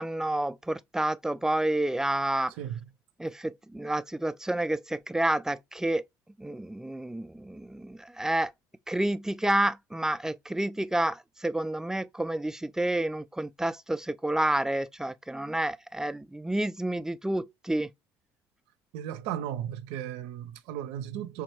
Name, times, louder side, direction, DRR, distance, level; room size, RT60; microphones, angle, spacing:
voice 1, 0.0-2.5 3.2-6.0 6.4-8.5 8.9-17.9, right 1 dB, 5° right, 0.3 m, -29 dB
voice 2, 2.6-2.9 18.9-21.4, right 10 dB, 75° right, 0.4 m, -35 dB
3.5 x 2.2 x 3.0 m
hypercardioid pair, 65°, 10 cm